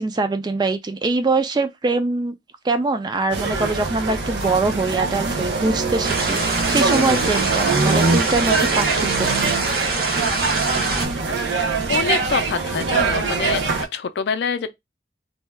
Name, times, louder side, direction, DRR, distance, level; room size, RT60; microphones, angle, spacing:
voice 1, 0.0-2.3 2.6-9.5, right 3 dB, 25° right, 0.3 m, -23 dB
sound 1, 3.3-13.8, right 4 dB, 85° right, 0.7 m, -23 dB
sound 2, 6.0-11.1, right 3 dB, 55° right, 0.8 m, -25 dB
voice 2, 11.9-13.6 13.9-14.7, left 6 dB, 75° left, 0.4 m, -25 dB
2.7 x 2.2 x 3.1 m
head